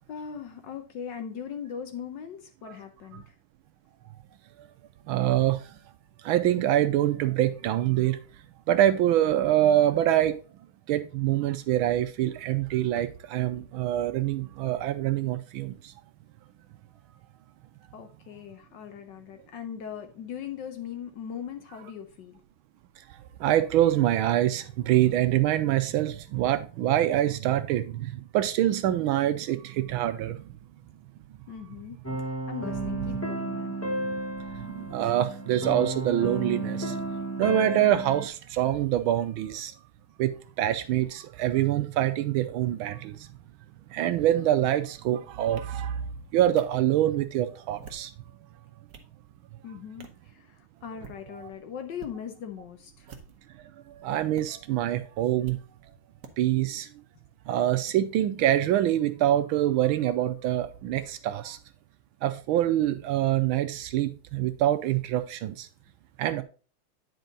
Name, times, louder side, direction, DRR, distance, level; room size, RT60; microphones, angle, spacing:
voice 1, 0.1-3.4 17.9-22.4 31.5-33.8 49.6-53.1, left 8 dB, 65° left, 1.2 m, -40 dB
voice 2, 5.1-5.6 6.2-8.2 8.7-10.4 10.9-15.7 23.4-30.4 34.7-37.0 37.4-39.7 40.2-40.3 40.6-43.2 43.9-46.0 46.3-48.1 54.0-55.6 56.4-56.9 57.5-61.6 62.2-65.7 66.2-66.4, right 12 dB, 75° right, 1.3 m, -25 dB
sound 1, 32.0-38.3, right 1 dB, 15° left, 0.5 m, -32 dB
sound 2, 45.6-45.7 46.6-46.7 47.6-48.1 48.6-49.1 50.0-50.2 50.9-51.2 51.9-52.1 53.0-53.5 54.3-54.4 55.4-55.6 56.2-56.3, right 6 dB, 50° right, 1.2 m, -47 dB
9.3 x 4.6 x 3.9 m
omnidirectional pair, 2.4 m